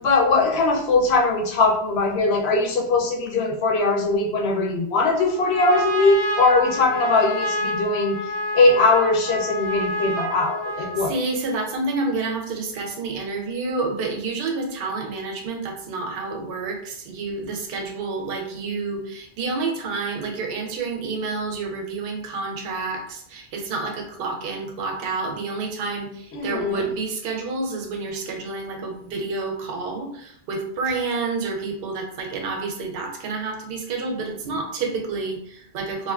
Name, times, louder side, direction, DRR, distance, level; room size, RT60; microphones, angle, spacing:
voice 1, 0.0-8.2 8.5-11.1 26.3-26.8, left 3 dB, 75° left, 0 dB, 0.8 m, -20 dB
Trumpet, 5.2-11.2, equal, 45° right, 0.4 m, -28 dB
voice 2, 11.0-36.1, right 3 dB, 65° right, 2 dB, 0.7 m, -29 dB
2.5 x 2.4 x 2.3 m, 0.68 s
omnidirectional pair, 1.1 m